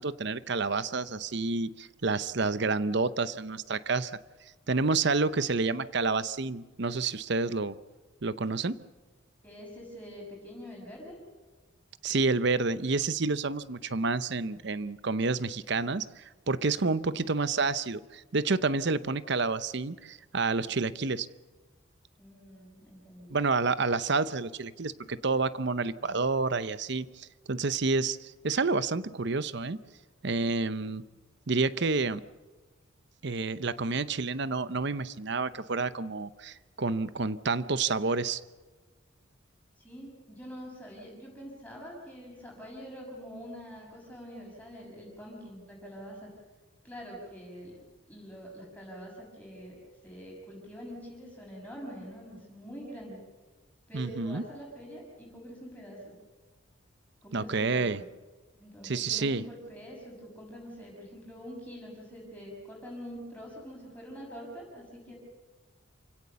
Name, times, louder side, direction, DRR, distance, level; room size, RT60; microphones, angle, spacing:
voice 1, 0.0-4.2 4.7-7.8 8.2-8.8 12.0-21.3 23.3-29.8 30.2-31.0 31.5-32.2 33.2-38.4 53.9-54.4 57.3-58.0 58.8-59.4, right 3 dB, 55° right, 15 dB, 0.8 m, -29 dB
voice 2, 9.4-11.2 22.2-23.3 39.8-46.3 46.8-47.8 48.1-49.8 50.0-53.2 53.9-56.2 57.2-58.0 58.6-65.1, equal, 10° left, -3 dB, 6.2 m, -45 dB
28.0 x 17.0 x 6.9 m, 1.3 s
head